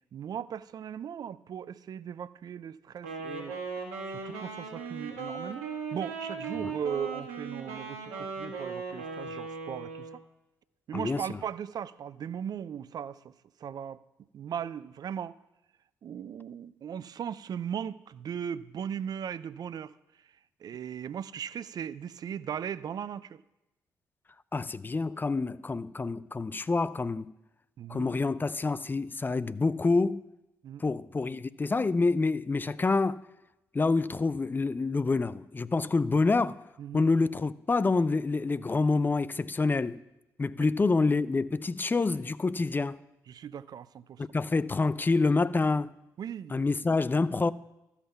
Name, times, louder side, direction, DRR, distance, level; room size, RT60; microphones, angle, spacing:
voice 1, 0.1-3.6 4.1-10.2 10.9-13.3 13.6-14.0 14.3-15.4 16.0-19.9 20.6-23.4 27.8-28.1 30.6-30.8 35.8-35.9 36.8-37.1 40.6-40.7 43.3-44.2 46.2-46.6, right 8 dB, 50° right, 0.5 m, -38 dB
Wind instrument woodwind instrument, 3.0-10.2, right 4 dB, 75° right, 1.6 m, -38 dB
voice 2, 24.5-27.3 27.9-30.2 30.8-33.2 33.7-36.6 36.9-40.0 40.4-43.0 44.2-45.9 46.5-47.5, left 3 dB, 25° left, 0.5 m, -27 dB
13.5 x 5.8 x 5.7 m
hypercardioid pair, 45°, 8 cm